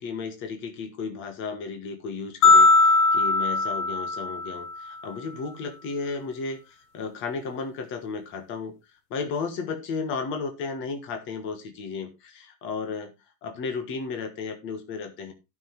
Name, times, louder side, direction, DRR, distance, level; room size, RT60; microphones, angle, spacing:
voice 1, 0.0-8.7 9.1-13.1 13.4-15.3, left 4 dB, 25° left, 7 dB, 1.5 m, -34 dB
sound 1, 2.4-4.8, left 3 dB, 65° left, 1.4 m, -19 dB
12.5 x 6.1 x 3.4 m, 0.24 s
supercardioid pair, 180°, 47 cm